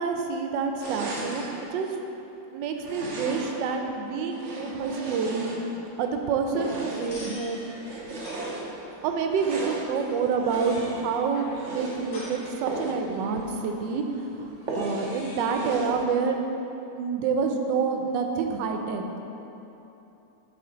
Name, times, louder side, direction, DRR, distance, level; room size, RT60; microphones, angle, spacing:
voice 1, 0.0-1.9 2.5-5.6 6.0-7.6 9.0-14.0 14.4-14.5 14.7-16.4 16.9-19.1, right 5 dB, 85° right, 4 dB, 1.3 m, -28 dB
sound 1, 0.8-1.6 2.8-3.7 4.3-5.9 6.5-7.2 7.8-8.7 9.3-9.9 10.5-11.0 11.5-12.0 12.6-13.0 13.4-13.5 13.9-14.0 14.7-15.2 15.5-16.0, right 3 dB, 50° right, 1.0 m, -35 dB
sound 2, 6.8-15.8, left 1 dB, 70° left, 1.5 m, -46 dB
6.9 x 3.7 x 5.0 m, 3.0 s
omnidirectional pair, 1.9 m